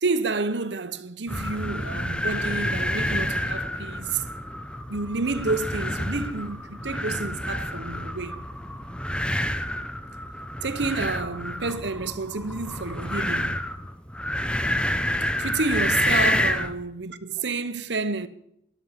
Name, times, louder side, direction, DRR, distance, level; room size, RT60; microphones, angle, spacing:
voice 1, 0.0-4.2 4.9-8.4 10.6-13.7 15.4-18.3, right 3 dB, 75° right, 1.0 m, -29 dB
sound 1, 1.3-16.8, left 1 dB, 5° left, 0.8 m, -28 dB
13.5 x 11.0 x 7.5 m
head